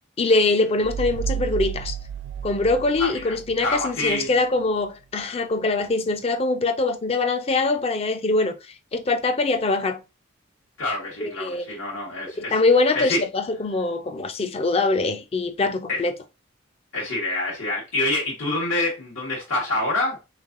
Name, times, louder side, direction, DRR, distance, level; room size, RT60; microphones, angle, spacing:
voice 1, 0.2-1.9 2.4-8.5 8.9-10.0 11.2-11.7 12.4-16.1, left 3 dB, 30° left, 0.4 m, -23 dB
sound 1, 0.8-4.2, right 7 dB, 65° right, 0.4 m, -32 dB
voice 2, 3.0-3.3 3.6-4.3 10.8-12.5 12.9-13.2 15.9-16.0 16.9-20.2, left 2 dB, 80° left, 1.2 m, -26 dB
3.5 x 3.1 x 2.5 m
head